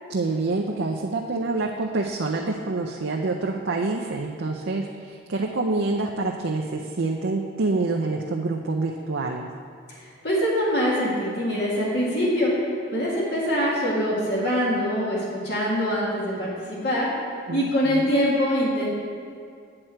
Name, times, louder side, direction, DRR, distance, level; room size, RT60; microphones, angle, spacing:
voice 1, 0.1-9.5 17.5-18.1, right 3 dB, 70° right, 0 dB, 0.6 m, -27 dB
voice 2, 10.2-12.5 12.9-17.1 17.5-18.9, equal, 55° left, -6 dB, 1.9 m, -24 dB
8.8 x 7.8 x 4.4 m, 2.3 s
head